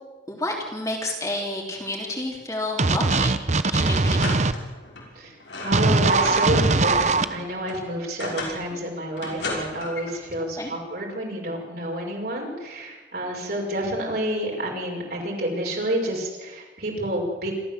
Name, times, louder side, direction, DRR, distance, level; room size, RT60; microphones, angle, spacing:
voice 1, 0.3-3.4 3.7-4.4 8.5-8.8 10.4-10.7, left 1 dB, 20° left, -1 dB, 3.2 m, -30 dB
sound 1, 2.8-4.5 5.7-7.3, right 3 dB, 40° right, 0.9 m, -20 dB
sound 2, 3.1-3.4 3.7-3.8 4.2-5.1 5.4-6.7 7.0-8.7 9.2-10.2, left 2 dB, 80° left, 6.2 m, -35 dB
voice 2, 5.1-17.5, right 1 dB, 55° right, 0 dB, 5.7 m, -29 dB
26.5 x 14.0 x 7.6 m, 1.2 s
head